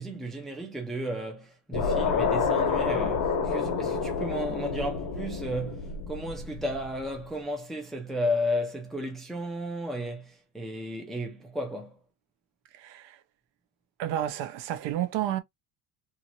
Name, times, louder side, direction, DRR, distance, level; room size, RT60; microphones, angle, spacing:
voice 1, 0.0-12.0, equal, ahead, 0.5 m, -33 dB
sound 1, 1.7-7.0, left 5 dB, 50° left, 1.1 m, -28 dB
voice 2, 12.7-13.2 14.0-15.4, right 12 dB, 70° right, 0.7 m, -31 dB
2.9 x 2.5 x 2.6 m
cardioid pair, 165°, 45 cm